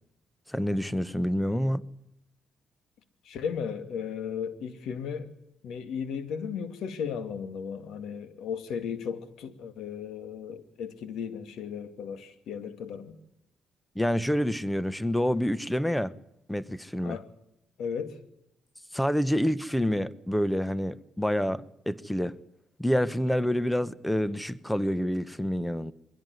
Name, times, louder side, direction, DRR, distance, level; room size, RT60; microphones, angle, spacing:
voice 1, 0.5-1.8 13.9-16.1 16.5-17.2 18.9-22.4 22.8-25.9, equal, 5° left, 1.1 m, -27 dB
voice 2, 3.2-5.3 5.6-13.2 17.0-17.3 17.8-18.2, left 7 dB, 80° left, 2.5 m, -35 dB
23.5 x 16.5 x 9.5 m
cardioid pair, 90°, 0 cm